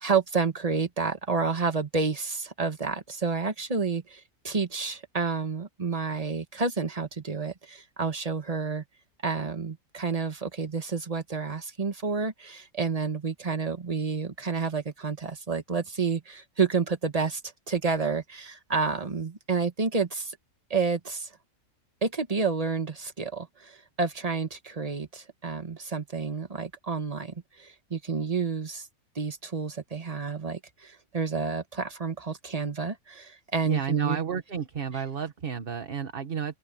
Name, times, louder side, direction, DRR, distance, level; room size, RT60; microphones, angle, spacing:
voice 1, 0.0-8.8 9.2-17.4 17.7-20.4 20.7-21.3 22.0-28.9 29.1-34.2, right 4 dB, 25° right, 1.4 m, -30 dB
voice 2, 33.6-36.6, right 7 dB, 40° right, 1.4 m, -31 dB
omnidirectional pair, 1.5 m